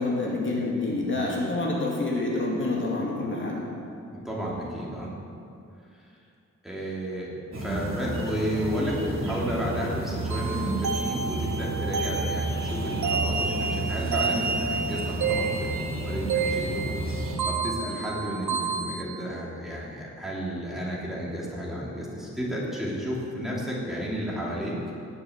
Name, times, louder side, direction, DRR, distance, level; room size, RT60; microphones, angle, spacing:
voice 1, 0.0-3.6, left 2 dB, 40° left, -4 dB, 2.4 m, -27 dB
voice 2, 4.1-5.1 6.6-7.3 7.6-16.9 17.4-24.7, equal, ahead, -6 dB, 2.9 m, -32 dB
sound 1, 7.5-17.4, right 2 dB, 45° right, 2.6 m, -31 dB
sound 2, 10.3-19.0, right 5 dB, 70° right, 1.4 m, -30 dB
18.5 x 7.1 x 8.0 m, 2.5 s
wide cardioid pair, 170°, 30 cm